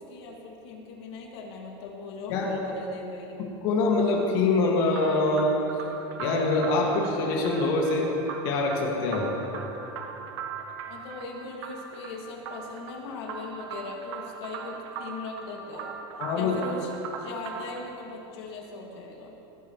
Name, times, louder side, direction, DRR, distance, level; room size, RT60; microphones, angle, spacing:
voice 1, 0.0-3.4 10.9-15.9 16.3-16.9 17.2-19.3, left 3 dB, 80° left, 0 dB, 2.3 m, -39 dB
voice 2, 3.6-5.6 6.2-8.1 8.4-9.3 16.2-16.5, left 3 dB, 55° left, -2 dB, 2.1 m, -24 dB
sound 1, 4.9-17.9, right 5 dB, 85° right, 1.6 m, -40 dB
19.0 x 15.0 x 3.2 m, 3.0 s
supercardioid pair, 175°, 14 cm